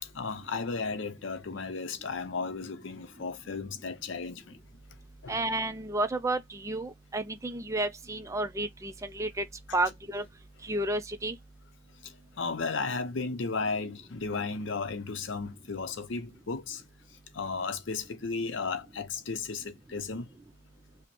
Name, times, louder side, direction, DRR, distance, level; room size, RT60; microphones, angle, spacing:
voice 1, 0.0-4.6 5.2-5.4 12.0-12.1 12.4-16.8 17.3-20.3, left 4 dB, 65° left, 0.6 m, -34 dB
voice 2, 5.3-9.4 9.7-10.2 10.7-11.4, right 2 dB, 15° right, 0.3 m, -31 dB
5.1 x 2.1 x 2.9 m
head